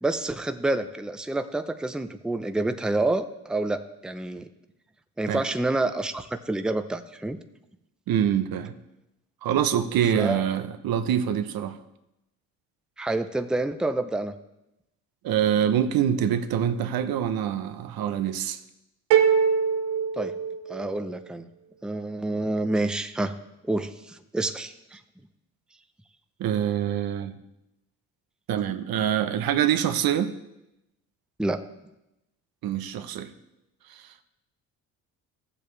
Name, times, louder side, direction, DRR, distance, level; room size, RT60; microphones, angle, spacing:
voice 1, 0.0-4.5 5.2-7.4 10.1-10.5 13.0-14.3 20.2-20.3 20.7-21.5 21.8-23.3 23.6-25.0 31.4-31.6, right 2 dB, ahead, 9 dB, 0.7 m, -28 dB
voice 2, 8.1-8.7 9.4-11.8 15.2-18.6 26.4-27.3 28.5-30.3 32.6-33.3 33.9-34.0, right 9 dB, 65° right, 10 dB, 0.9 m, -25 dB
sound 1, 19.1-21.1, right 7 dB, 85° right, 1.2 m, -23 dB
15.0 x 7.5 x 3.3 m, 0.91 s
supercardioid pair, 65°, 40 cm